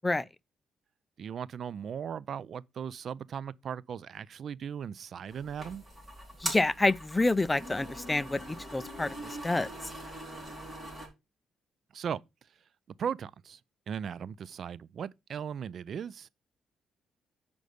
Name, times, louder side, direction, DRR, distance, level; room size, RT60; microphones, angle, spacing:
voice 1, 1.2-5.8 11.9-12.2 13.0-13.6 13.9-16.3, right 7 dB, 55° right, 0.4 m, -37 dB
sound 1, 5.3-11.1, right 1 dB, 10° right, 4.7 m, -42 dB
voice 2, 6.4-9.7, left 2 dB, 15° left, 0.4 m, -28 dB
7.9 x 5.2 x 5.0 m
cardioid pair, 90°, 0 cm